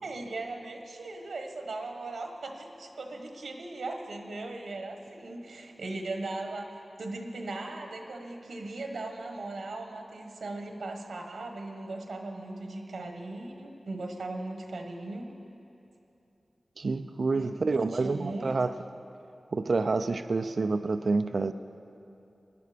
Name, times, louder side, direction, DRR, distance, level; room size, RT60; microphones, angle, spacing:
voice 1, 0.0-6.7 7.0-15.3 17.3-18.5, right 2 dB, 90° right, 4 dB, 1.2 m, -38 dB
voice 2, 16.8-18.8 19.5-21.5, right 3 dB, 65° right, 11 dB, 0.4 m, -28 dB
19.0 x 11.0 x 5.0 m, 2.8 s
cardioid pair, 55°, 0 cm